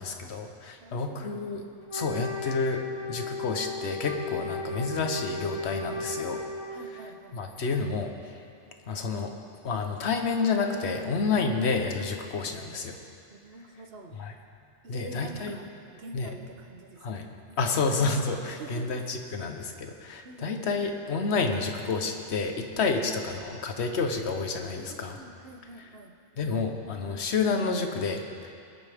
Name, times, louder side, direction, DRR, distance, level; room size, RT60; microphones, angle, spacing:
voice 1, 0.0-1.6 1.9-2.8 3.1-6.4 7.3-8.1 8.9-9.3 9.6-13.0 14.2-14.3 14.9-15.6 16.1-16.3 17.0-17.3 17.6-25.2 26.4-28.5, left 4 dB, 60° left, 5 dB, 1.2 m, -29 dB
voice 2, 0.8-1.4 4.3-4.5 6.7-7.4 13.3-14.2 14.8-17.8 18.5-19.1 20.2-20.6 24.8-26.1, right 2 dB, 55° right, 5 dB, 1.1 m, -47 dB
Wind instrument woodwind instrument, 1.9-7.0, left 3 dB, 25° left, 1.7 m, -35 dB
21.5 x 10.0 x 3.5 m, 2.4 s
omnidirectional pair, 1.3 m